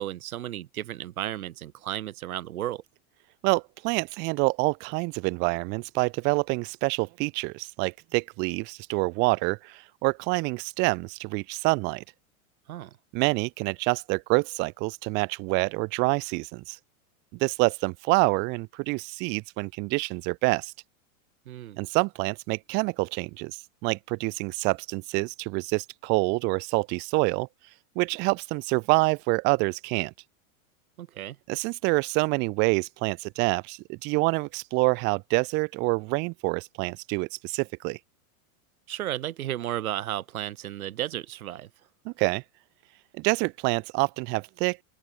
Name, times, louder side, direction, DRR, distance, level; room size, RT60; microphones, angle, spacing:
voice 1, 0.0-2.8 12.7-13.0 21.5-21.8 31.0-31.4 38.9-41.7, right 13 dB, 75° right, 5.8 m, -33 dB
voice 2, 3.4-12.0 13.1-16.8 17.4-20.7 21.8-27.5 28.0-30.1 31.5-38.0 42.0-42.4 43.2-44.8, right 28 dB, 25° right, 1.0 m, -27 dB
open air
supercardioid pair, 175°, 43 cm